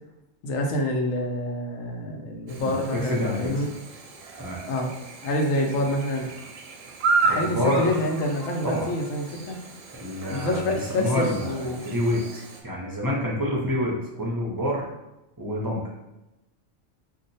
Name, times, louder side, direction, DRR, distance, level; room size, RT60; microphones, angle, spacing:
voice 1, 0.4-3.7 4.7-4.9 5.2-6.3 7.2-9.6 10.3-11.8, left 1 dB, 90° left, 1 dB, 1.0 m, -27 dB
Chirp tweet / Buzz, 2.5-12.6, right 4 dB, 80° right, 0.9 m, -33 dB
voice 2, 2.6-3.6 4.4-4.6 7.3-7.9 8.6-8.9 9.9-14.8 15.4-15.8, equal, 35° right, -5 dB, 0.3 m, -28 dB
2.8 x 2.0 x 3.9 m, 0.96 s
omnidirectional pair, 1.3 m